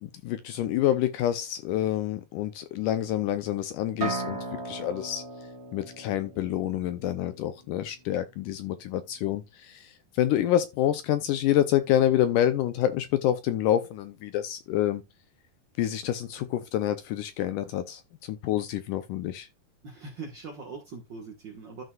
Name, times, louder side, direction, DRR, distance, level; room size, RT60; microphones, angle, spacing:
voice 1, 0.0-5.2 5.7-15.0 15.8-19.5, left 12 dB, 75° left, 2.0 m, -27 dB
sound 1, 4.0-7.8, right 3 dB, 30° right, 1.4 m, -37 dB
voice 2, 19.8-21.8, right 4 dB, 55° right, 1.3 m, -41 dB
13.5 x 5.4 x 2.4 m
omnidirectional pair, 4.1 m